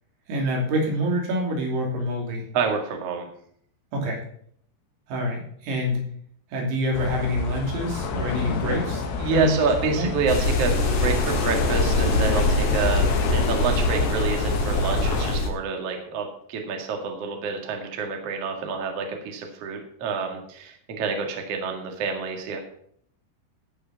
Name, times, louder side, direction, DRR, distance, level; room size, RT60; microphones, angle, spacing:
voice 1, 0.3-2.4 3.9-4.2 5.1-6.0 6.5-9.1 9.3-10.1, equal, 90° right, 0 dB, 5.6 m, -26 dB
voice 2, 2.5-3.3 9.2-10.7 11.0-22.6, right 5 dB, 55° right, 3 dB, 1.7 m, -28 dB
sound 1, 6.9-15.4, left 4 dB, 70° left, 2.3 m, -29 dB
sound 2, 10.3-15.5, left 2 dB, 90° left, 1.3 m, -24 dB
15.0 x 5.9 x 5.8 m, 0.64 s
omnidirectional pair, 5.9 m